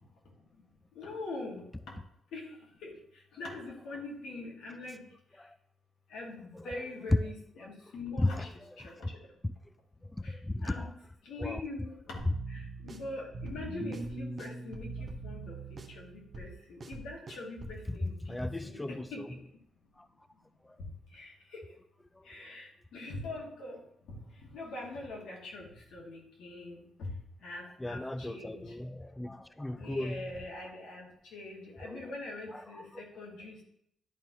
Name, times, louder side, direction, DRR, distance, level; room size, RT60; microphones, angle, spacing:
voice 1, 1.0-1.6 2.3-2.4 2.8-2.9 3.4-5.0 6.1-8.5 8.8-8.9 10.2-10.3 10.6-10.9 11.3-11.9 12.5-14.9 15.2-15.6 16.0-19.4 21.1-21.3 22.3-23.8 24.5-27.1 27.4-28.7 29.8-33.6, left 2 dB, 85° left, -2 dB, 2.1 m, -43 dB
voice 2, 10.2-10.9 11.4-11.6 18.2-19.1 20.0-20.1 22.2-22.3 27.8-30.2 31.8-32.1 32.5-32.9, left 1 dB, 10° left, 11 dB, 0.3 m, -36 dB
sound 1, 12.2-17.9, right 3 dB, 40° right, 0.9 m, -42 dB
10.5 x 4.3 x 3.1 m, 0.73 s
cardioid pair, 105°, 0 cm